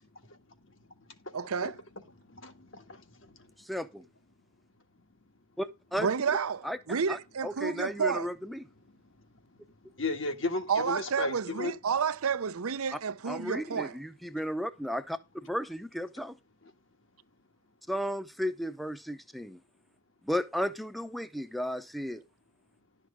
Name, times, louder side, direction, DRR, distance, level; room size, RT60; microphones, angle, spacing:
voice 1, 1.3-1.8 5.9-8.3 10.7-14.0, right 6 dB, 80° right, 0.6 m, -30 dB
voice 2, 2.2-3.5 10.0-11.7, left 3 dB, 60° left, 1.8 m, -35 dB
voice 3, 3.6-4.0 5.6-6.1 6.6-6.8 7.1-8.6 13.3-16.4 17.9-19.6 20.2-22.2, equal, ahead, 0.7 m, -34 dB
11.5 x 6.4 x 5.0 m
head